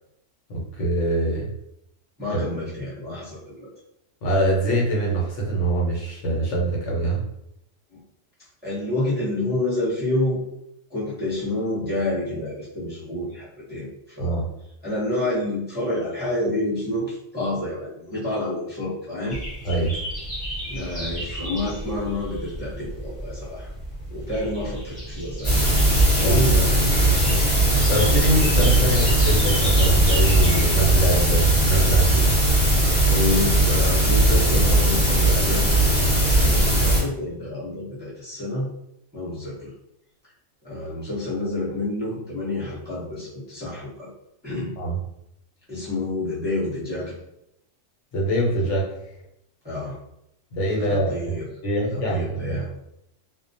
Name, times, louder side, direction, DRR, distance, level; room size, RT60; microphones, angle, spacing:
voice 1, 0.5-1.5 2.3-2.4 4.2-7.2 14.2-14.5 19.6-19.9 26.2-26.4 27.9-32.4 44.8-45.0 48.1-48.9 50.5-51.4 51.6-52.6, right 2 dB, 75° left, -3 dB, 1.0 m, -24 dB
voice 2, 2.2-3.7 7.9-8.0 8.6-10.4 10.9-13.9 14.2-14.4 14.8-19.4 20.6-23.7 24.1-25.6 26.2-27.4 33.1-35.7 36.3-38.7 39.1-39.7 40.6-44.1 44.4-44.7 45.7-47.2 49.6-50.0 50.8-51.5 51.9-52.8, left 1 dB, 10° right, -9 dB, 0.7 m, -28 dB
sound 1, 19.3-31.7, right 1 dB, 5° left, 1.1 m, -34 dB
sound 2, 25.4-37.0, right 1 dB, 30° left, 1.0 m, -19 dB
2.3 x 2.1 x 2.6 m, 0.80 s
omnidirectional pair, 1.3 m